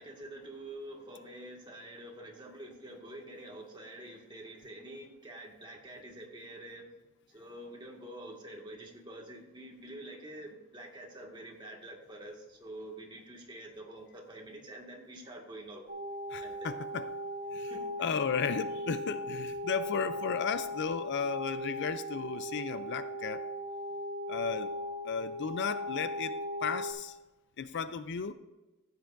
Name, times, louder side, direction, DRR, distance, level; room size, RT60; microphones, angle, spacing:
voice 1, 0.0-6.8 7.3-15.8 16.4-16.7 17.7-18.2, right 1 dB, 20° right, -1 dB, 1.8 m, -47 dB
sound 1, 15.9-26.9, left 1 dB, 45° right, 2.7 m, -38 dB
voice 2, 16.3-17.1 17.5-17.7 18.0-23.4 24.3-24.7 25.0-26.4 26.6-27.2 27.6-28.3, left 6 dB, 50° left, 12 dB, 0.4 m, -34 dB
15.0 x 9.4 x 2.5 m, 1.0 s
head